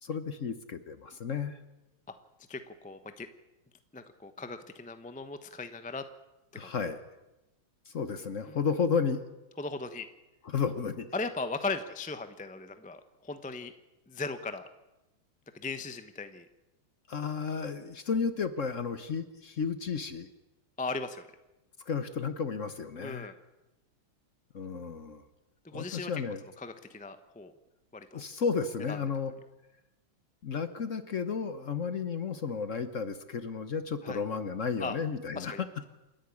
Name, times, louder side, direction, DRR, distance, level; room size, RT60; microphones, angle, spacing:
voice 1, 0.0-1.6 6.5-7.0 7.9-9.2 10.4-11.1 17.1-20.3 21.9-23.3 24.5-25.2 25.7-26.4 28.1-29.3 30.4-35.7, left 5 dB, 50° left, 11 dB, 1.1 m, -32 dB
voice 2, 2.5-3.3 3.9-6.0 6.5-6.7 8.5-8.6 9.6-10.1 11.1-13.7 14.1-14.7 15.5-16.5 20.8-21.3 23.0-23.3 25.6-26.1 26.6-27.5 27.9-28.2 28.9-29.0 34.0-34.2 34.8-34.9 35.3-35.9, left 3 dB, 10° left, 9 dB, 0.3 m, -38 dB
28.0 x 11.0 x 9.8 m, 0.99 s
omnidirectional pair, 2.4 m